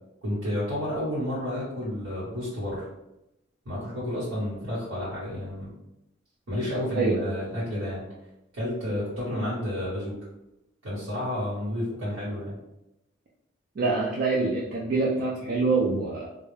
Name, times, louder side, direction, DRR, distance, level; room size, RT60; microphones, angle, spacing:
voice 1, 0.2-2.8 3.6-5.7 6.5-8.0 8.5-10.2 10.8-12.5, left 1 dB, 90° right, -11 dB, 1.1 m, -31 dB
voice 2, 6.9-7.3 13.8-16.3, right 3 dB, 45° right, -4 dB, 0.3 m, -25 dB
2.2 x 2.0 x 3.1 m, 0.90 s
head